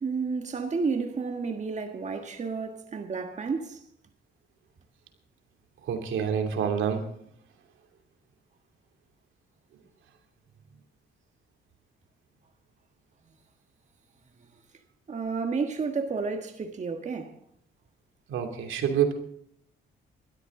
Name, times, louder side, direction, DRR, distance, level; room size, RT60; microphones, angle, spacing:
voice 1, 0.0-3.8 15.1-17.4, right 4 dB, 35° right, 1.6 m, -31 dB
voice 2, 5.9-7.0 18.3-19.1, right 8 dB, 80° right, 2.8 m, -27 dB
20.0 x 13.0 x 3.8 m
cardioid pair, 90°, 20 cm